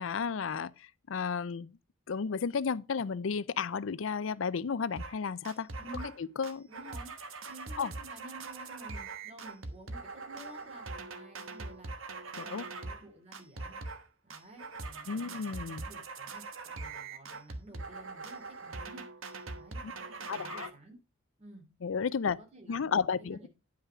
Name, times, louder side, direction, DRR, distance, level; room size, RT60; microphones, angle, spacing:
voice 1, 0.0-1.7 2.1-5.7 6.4-6.7 7.8-7.9 12.4-12.6 15.1-15.9 19.8-19.9 20.3-20.7 21.8-22.4 22.7-23.5, left 6 dB, 70° left, 0.5 m, -33 dB
sound 1, 5.0-5.2 5.4-6.2 6.4-13.0 13.3-14.0 14.3-20.7, right 3 dB, 75° right, 1.2 m, -42 dB
voice 2, 5.8-6.1 6.7-7.1 7.4-13.8 14.2-21.0 21.4-21.6 22.4-23.5, right 1 dB, 35° right, 3.0 m, -52 dB
10.0 x 5.7 x 4.8 m
head